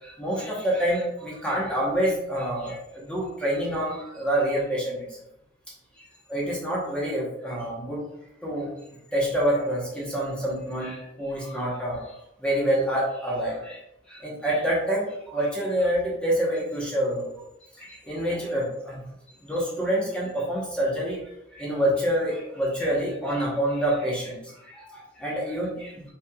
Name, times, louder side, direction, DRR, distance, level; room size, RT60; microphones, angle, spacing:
voice 1, 0.0-5.1 6.3-8.0 8.4-8.7 9.1-13.8 14.1-17.3 17.8-19.0 19.4-21.2 21.5-26.1, right 1 dB, 5° left, -6 dB, 1.0 m, -27 dB
5.6 x 3.4 x 2.4 m, 0.83 s
head